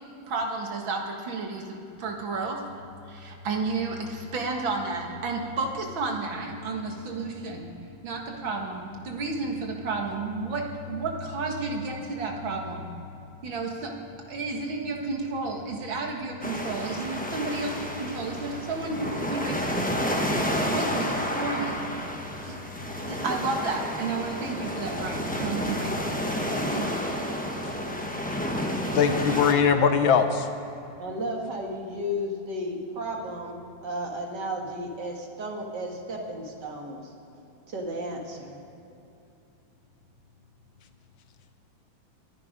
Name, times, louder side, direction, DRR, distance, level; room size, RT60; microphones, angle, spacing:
voice 1, 0.3-2.6 3.1-7.7 8.0-12.8 13.4-14.0 14.3-19.6 20.7-21.8 22.5-26.3 26.7-27.1, right 3 dB, 80° right, 1 dB, 2.5 m, -32 dB
sound 1, 16.4-29.5, equal, 5° left, 0.8 m, -30 dB
voice 2, 28.9-30.5, left 6 dB, 85° left, 8 dB, 1.8 m, -21 dB
voice 3, 31.0-37.1 37.7-38.6, equal, 60° right, 1 dB, 2.4 m, -33 dB
23.0 x 10.0 x 5.2 m, 2.8 s
omnidirectional pair, 2.1 m